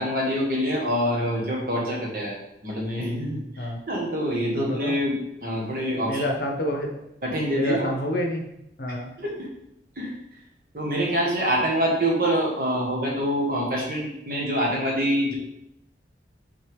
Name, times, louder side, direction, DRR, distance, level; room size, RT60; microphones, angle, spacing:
voice 1, 0.0-2.4 2.6-5.2 5.4-6.2 7.2-7.9 9.2-9.5 10.0-10.1 10.7-15.3, equal, 50° right, -2 dB, 1.4 m, -25 dB
voice 2, 4.5-4.9 6.0-7.0 7.5-8.5 8.8-9.1, equal, 55° left, 1 dB, 0.9 m, -28 dB
6.1 x 4.3 x 3.6 m, 0.83 s
head